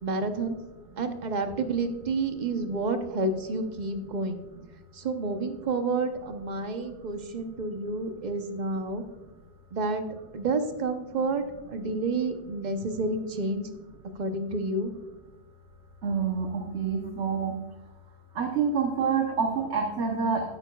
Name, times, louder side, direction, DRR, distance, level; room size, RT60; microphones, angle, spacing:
voice 1, 0.0-0.6 1.0-4.4 4.9-9.0 9.7-10.0 10.3-13.7 14.2-14.9, right 3 dB, 45° right, 7 dB, 0.9 m, -29 dB
voice 2, 16.0-17.5 18.3-20.4, right 6 dB, 90° right, 2 dB, 1.3 m, -27 dB
12.5 x 9.7 x 2.3 m, 1.2 s
omnidirectional pair, 1.1 m